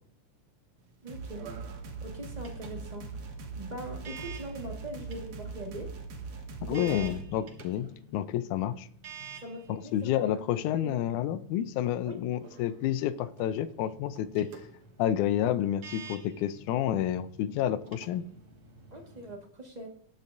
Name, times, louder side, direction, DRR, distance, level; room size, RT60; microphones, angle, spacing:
sound 1, 0.8-19.3, right 7 dB, 55° right, 1.9 m, -51 dB
voice 1, 1.0-1.5 2.0-3.1 3.4-5.9 6.6-7.1 7.8-7.9 9.4-10.1 10.8-10.9 12.1-12.2 18.9-19.9, right 1 dB, 25° right, 1 dB, 0.9 m, -41 dB
sound 2, 1.1-7.3, right 4 dB, 85° right, 2.9 m, -41 dB
sound 3, 2.0-19.3, left 5 dB, 55° left, 2.7 m, -56 dB
voice 2, 6.7-8.9 9.7-14.5 15.0-18.2, left 11 dB, 90° left, 14 dB, 2.1 m, -29 dB
19.0 x 6.7 x 2.6 m, 0.62 s
omnidirectional pair, 3.4 m